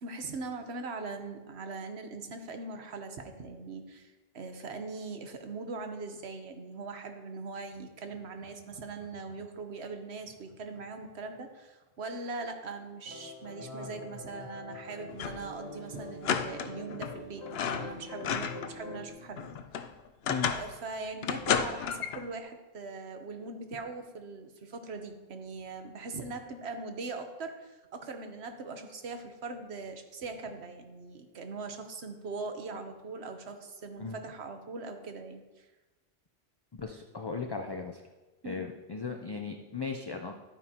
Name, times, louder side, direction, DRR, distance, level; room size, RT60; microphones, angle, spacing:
voice 1, 0.0-19.6 20.5-35.7 38.4-38.7, right 3 dB, 75° right, 6 dB, 1.2 m, -41 dB
Laughter, 7.7-11.9 13.5-16.5 16.8-16.9, left 1 dB, 30° right, 1.7 m, -53 dB
sound 1, 13.1-19.1, left 2 dB, 90° left, 2.3 m, -45 dB
sound 2, 15.1-15.5 15.8-15.9 16.2-17.1 17.5-18.8 19.1-20.8 21.2-22.3, left 7 dB, 70° left, 0.8 m, -32 dB
voice 2, 36.7-38.0 38.4-40.4, left 4 dB, 35° left, 3 dB, 0.4 m, -37 dB
12.0 x 9.1 x 2.9 m, 1.2 s
omnidirectional pair, 1.1 m